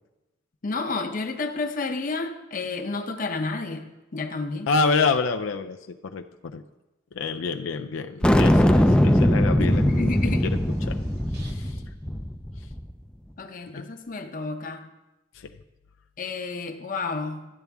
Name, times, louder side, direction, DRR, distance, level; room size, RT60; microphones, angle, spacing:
voice 1, 0.6-4.7 9.6-10.5 13.4-14.9 16.2-17.5, left 3 dB, 45° left, 6 dB, 0.7 m, -31 dB
voice 2, 4.7-6.6 7.1-10.1 10.4-11.0 11.4-11.7 13.7-13.9 15.3-15.5, left 4 dB, 90° left, 6 dB, 0.4 m, -28 dB
sound 1, 8.2-12.9, equal, 5° left, 0.4 m, -21 dB
sound 2, 9.7-12.0, equal, 55° right, 1.0 m, -42 dB
12.5 x 8.1 x 3.5 m, 1.0 s
head